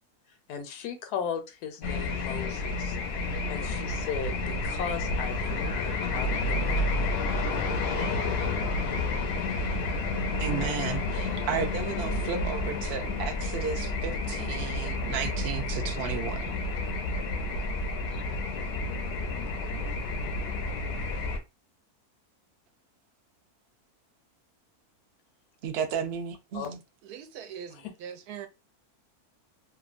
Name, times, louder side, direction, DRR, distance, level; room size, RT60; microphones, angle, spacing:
voice 1, 0.5-3.0 3.2-7.0 26.5-26.7, left 7 dB, 90° left, 1.2 m, -37 dB
sound 1, 1.8-21.4, left 2 dB, 70° left, 0.6 m, -30 dB
Wind, 6.6-16.8, equal, 40° right, 1.0 m, -46 dB
voice 2, 10.4-16.5 25.6-26.8, right 7 dB, 65° right, 0.6 m, -33 dB
voice 3, 27.0-28.5, right 8 dB, 90° right, 1.1 m, -42 dB
2.9 x 2.2 x 2.4 m
omnidirectional pair, 1.6 m